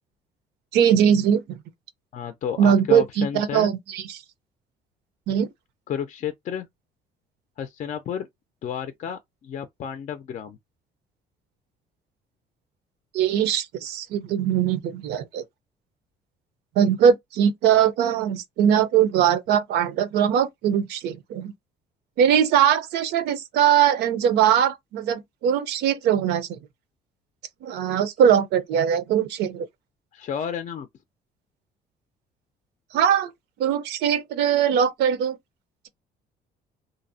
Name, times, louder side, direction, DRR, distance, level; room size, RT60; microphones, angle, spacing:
voice 1, 0.7-1.6 2.6-4.2 5.3-5.5 13.1-15.4 16.8-21.5 22.2-26.6 27.6-29.7 32.9-33.3 33.6-35.4, right 9 dB, 80° right, 0.6 m, -21 dB
voice 2, 2.1-3.7 5.9-6.7 7.6-8.3 8.6-10.6 30.1-30.9, left 8 dB, 45° left, 0.4 m, -31 dB
2.6 x 2.0 x 2.6 m
cardioid pair, 110°, 17 cm